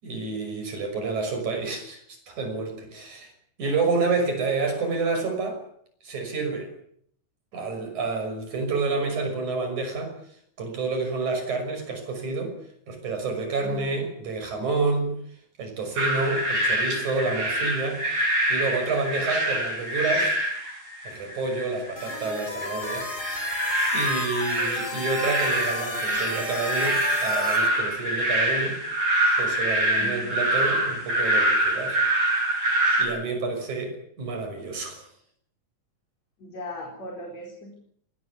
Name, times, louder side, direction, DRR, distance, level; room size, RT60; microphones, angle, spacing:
voice 1, 0.0-3.3 3.6-5.6 6.0-6.7 7.5-10.2 10.6-12.5 12.9-15.1 15.6-18.0 18.5-20.4 21.0-23.1 23.9-28.8 29.4-32.0 33.0-35.1, right 3 dB, 60° right, 5 dB, 7.4 m, -29 dB
voice 2, 13.6-14.0 30.0-30.4 36.4-37.7, left 1 dB, 55° left, 1 dB, 5.6 m, -38 dB
sound 1, 16.0-33.0, right 1 dB, 75° right, 8.5 m, -25 dB
sound 2, 22.0-27.7, left 2 dB, 25° left, 4.9 m, -34 dB
21.0 x 18.5 x 9.8 m, 0.66 s
omnidirectional pair, 3.8 m